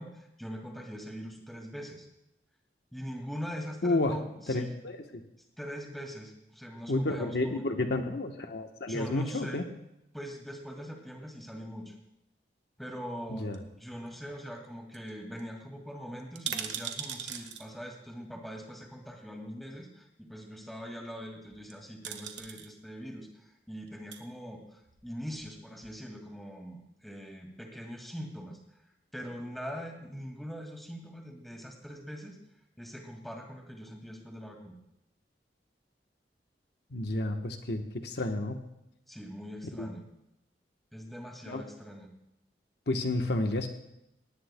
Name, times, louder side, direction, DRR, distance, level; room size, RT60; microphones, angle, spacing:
voice 1, 0.0-2.1 2.9-4.7 5.6-7.7 8.9-9.7 10.1-11.9 12.8-28.6 29.1-32.4 32.8-34.8 39.1-40.0 40.9-42.1, equal, ahead, 1 dB, 2.0 m, -42 dB
voice 2, 3.8-4.2 4.5-5.2 6.9-9.7 13.3-13.6 36.9-38.6 39.8-39.9 41.5-41.6 42.9-43.7, left 2 dB, 65° left, 4 dB, 1.0 m, -31 dB
sound 1, 13.5-14.3 14.6-14.7 14.9-15.1 15.4-15.5 16.2-17.7 18.8-18.9 21.5-21.7 22.0-22.7 23.8-24.2 24.9-25.6 25.8-25.9, right 8 dB, 85° right, 1.4 m, -39 dB
19.0 x 18.5 x 2.2 m, 0.85 s
head